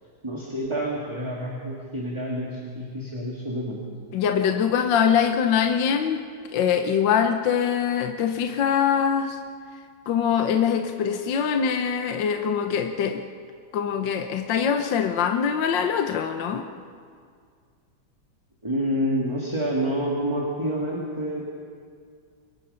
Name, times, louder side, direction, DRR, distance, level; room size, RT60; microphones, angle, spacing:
voice 1, 0.2-3.8 18.6-21.4, equal, 15° right, -3 dB, 2.5 m, -28 dB
voice 2, 4.1-6.2 6.5-9.4 10.1-13.2 13.7-16.7, left 7 dB, 65° left, 6 dB, 1.6 m, -23 dB
27.5 x 24.0 x 5.7 m, 2.1 s
omnidirectional pair, 2.2 m